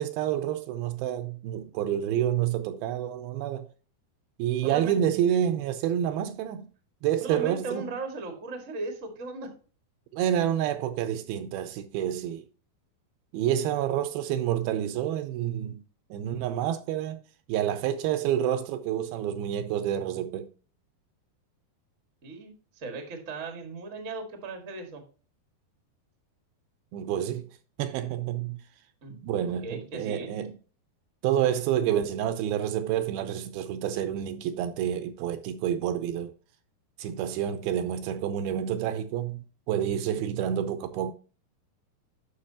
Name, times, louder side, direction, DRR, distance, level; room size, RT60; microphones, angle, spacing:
voice 1, 0.0-3.7 4.4-6.7 7.0-7.9 10.1-12.4 13.3-15.8 16.1-17.2 17.5-20.5 26.9-27.5 27.8-28.6 29.1-30.5 31.2-36.3 37.0-41.1, right 10 dB, 80° right, 2.4 m, -28 dB
voice 2, 4.6-5.0 7.2-9.5 22.2-25.0 29.0-30.3, right 3 dB, 50° right, 0.9 m, -37 dB
9.8 x 6.1 x 2.8 m
omnidirectional pair, 4.5 m